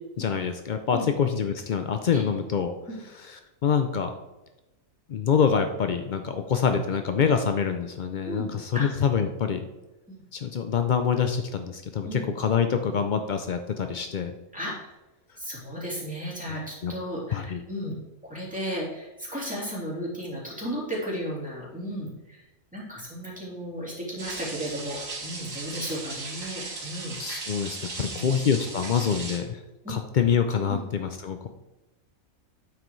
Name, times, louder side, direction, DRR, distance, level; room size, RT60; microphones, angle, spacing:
voice 1, 0.2-2.7 3.2-4.1 5.1-9.6 10.3-14.3 16.5-16.9 17.3-17.6 27.2-29.6 29.9-31.5, left 7 dB, 80° left, 7 dB, 0.4 m, -26 dB
voice 2, 8.2-8.9 10.1-10.2 12.0-12.3 14.5-14.7 15.4-17.9 18.2-27.2 28.2-28.3 29.8-30.0 30.7-30.9, equal, 5° right, -7 dB, 3.2 m, -34 dB
sound 1, 24.2-29.4, right 3 dB, 75° right, 1.9 m, -37 dB
9.1 x 7.6 x 3.1 m, 1.0 s
omnidirectional pair, 1.5 m